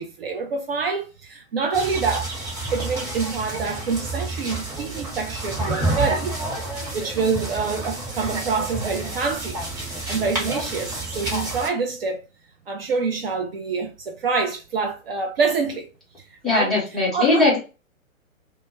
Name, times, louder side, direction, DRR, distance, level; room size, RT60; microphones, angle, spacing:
voice 1, 0.0-2.3 2.7-12.2 12.7-15.9 16.2-17.5, right 4 dB, 45° right, 0.5 m, -27 dB
sound 1, 1.7-11.7, right 2 dB, 30° right, 1.1 m, -29 dB
voice 2, 16.4-17.6, left 2 dB, ahead, 0.6 m, -19 dB
2.2 x 2.1 x 3.0 m
figure-of-eight pair, 120°, 41 cm